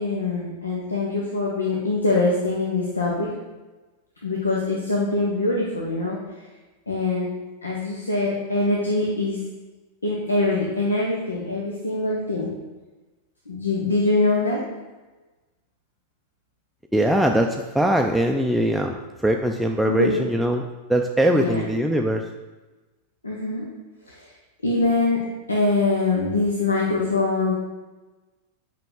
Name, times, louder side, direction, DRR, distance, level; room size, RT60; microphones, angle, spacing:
voice 1, 0.0-3.3 4.2-6.2 6.9-7.3 7.6-9.4 10.0-12.5 13.5-14.6 19.8-20.2 21.3-21.6 23.2-23.7 24.1-24.3 24.6-27.5, left 2 dB, 80° left, -3 dB, 1.2 m, -23 dB
voice 2, 16.9-19.0 19.2-20.6 20.9-22.2, right 1 dB, ahead, 2 dB, 0.5 m, -21 dB
8.9 x 5.7 x 3.8 m, 1.2 s
figure-of-eight pair, 90°, 0 cm